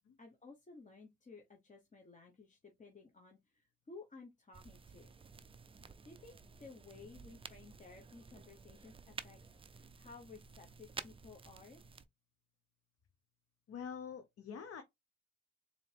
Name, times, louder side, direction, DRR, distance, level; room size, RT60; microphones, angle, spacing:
voice 1, 0.2-5.2 6.0-9.4 9.7-11.8, left 4 dB, 25° left, 0.9 m, -56 dB
sound 1, 4.5-12.1, right 5 dB, 20° right, 0.4 m, -52 dB
voice 2, 13.7-14.8, left 7 dB, 50° left, 0.8 m, -45 dB
4.1 x 2.7 x 3.3 m
cardioid pair, 90°, 30 cm